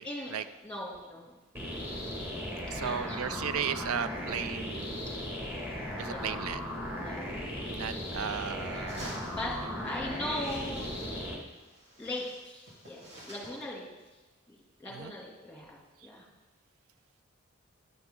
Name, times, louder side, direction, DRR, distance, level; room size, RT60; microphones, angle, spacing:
voice 1, 0.0-1.3 2.8-3.4 5.1-5.2 6.1-6.4 6.9-7.2 8.5-9.0 9.3-10.9 12.0-14.2 14.5-16.3, left 1 dB, 5° left, -3 dB, 2.6 m, -40 dB
sound 1, 1.5-11.4, left 1 dB, 10° right, 1.9 m, -37 dB
voice 2, 2.7-5.0 5.9-6.7 7.7-9.1 14.9-15.1, right 7 dB, 75° right, 13 dB, 0.4 m, -35 dB
sound 2, 8.9-9.6 10.3-11.2 11.5-13.7, equal, 55° right, 3.5 m, -48 dB
12.5 x 10.5 x 3.8 m, 1.2 s
head